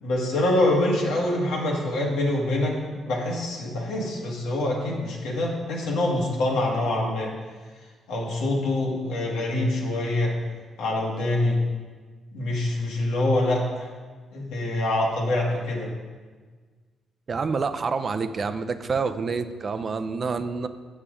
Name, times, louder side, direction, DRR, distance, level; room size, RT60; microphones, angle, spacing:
voice 1, 0.0-2.7 3.1-7.3 8.1-10.3 10.8-11.6 12.3-13.9 14.3-15.9, left 1 dB, 90° left, -2 dB, 1.7 m, -25 dB
voice 2, 17.3-20.7, right 4 dB, 40° right, 10 dB, 0.5 m, -27 dB
7.2 x 6.8 x 4.9 m, 1.5 s
cardioid pair, 90°, 0 cm